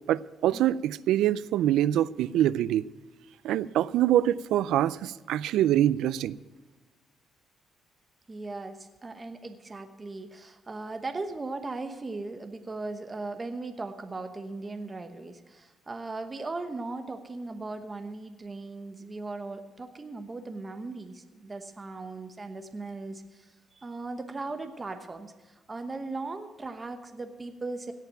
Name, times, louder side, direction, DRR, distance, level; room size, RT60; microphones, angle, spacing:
voice 1, 0.1-2.9 3.4-6.4, right 12 dB, 85° right, 0.4 m, -25 dB
voice 2, 8.3-27.9, right 3 dB, 25° right, 1.0 m, -38 dB
17.0 x 5.8 x 9.0 m
cardioid pair, 90°, 0 cm